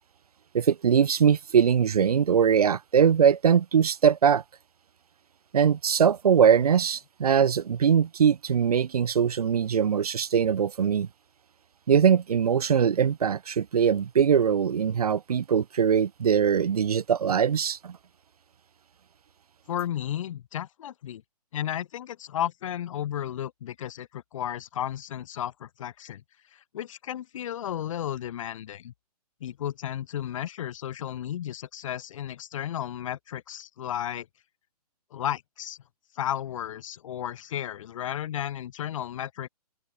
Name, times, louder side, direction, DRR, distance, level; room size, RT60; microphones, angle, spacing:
voice 1, 0.5-4.4 5.5-11.1 11.9-18.0, right 7 dB, 65° right, 1.6 m, -22 dB
voice 2, 19.7-21.2 21.5-26.2 26.5-28.9 29.4-34.3 35.1-35.8 36.1-39.5, left 11 dB, 55° left, 1.8 m, -33 dB
open air
figure-of-eight pair, 130°, 20 cm